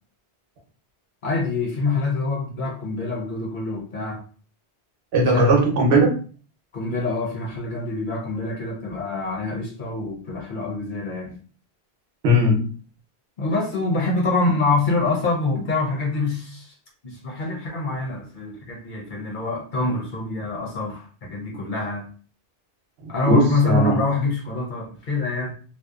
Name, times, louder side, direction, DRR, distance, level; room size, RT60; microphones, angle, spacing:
voice 1, 1.2-4.2 5.2-5.5 6.7-11.4 13.4-16.7 17.0-22.1 23.1-25.5, left 3 dB, 55° left, -2 dB, 0.8 m, -25 dB
voice 2, 5.1-6.1 12.2-12.7 23.0-24.0, right 1 dB, 75° right, 0 dB, 1.0 m, -18 dB
2.7 x 2.1 x 2.3 m, 0.40 s
omnidirectional pair, 1.1 m